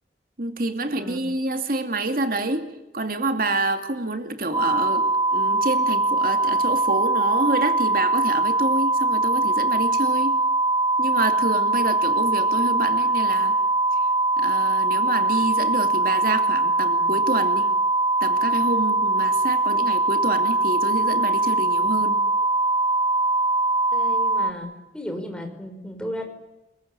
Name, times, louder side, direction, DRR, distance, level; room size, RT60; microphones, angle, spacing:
voice 1, 0.4-10.4 11.0-13.6 14.0-14.1 14.4-17.7 18.2-22.2, right 2 dB, 55° right, 2.5 m, -27 dB
sound 1, 4.5-24.5, right 2 dB, 20° right, 1.9 m, -22 dB
voice 2, 23.9-24.7 24.9-26.2, equal, 5° left, 5.6 m, -34 dB
29.0 x 22.0 x 8.7 m
head